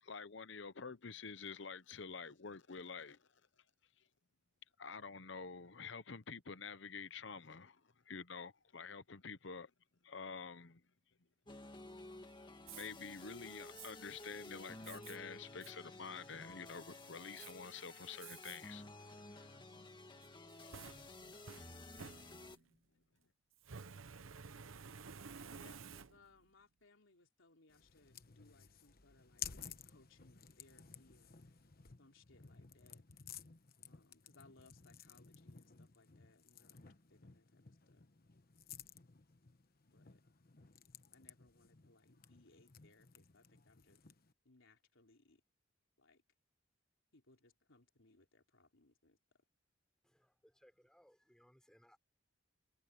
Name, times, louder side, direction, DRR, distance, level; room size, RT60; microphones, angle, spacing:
voice 1, 0.0-3.3 4.8-9.7 10.0-10.8 12.7-19.9 21.2-21.3 22.2-22.4, left 5 dB, 65° left, 0.9 m, -49 dB
sound 1, 11.5-22.6, left 2 dB, 25° left, 2.0 m, -53 dB
Fire, 12.7-12.9 13.8-13.9 14.8-15.2 15.6-15.7 16.2-16.7 17.4-17.5 18.2-18.6 19.1-19.2 20.2-22.7 23.6-26.4, right 6 dB, 90° right, 0.8 m, -53 dB
voice 2, 25.5-31.5 32.0-33.0 33.9-38.1 39.9-40.2 41.1-44.0 44.4-45.4 46.0-46.2 47.1-49.2, left 2 dB, 80° left, 3.7 m, -68 dB
sound 2, 27.7-44.3, left 9 dB, 50° left, 1.1 m, -55 dB
voice 3, 50.0-52.0, equal, 5° left, 4.8 m, -68 dB
head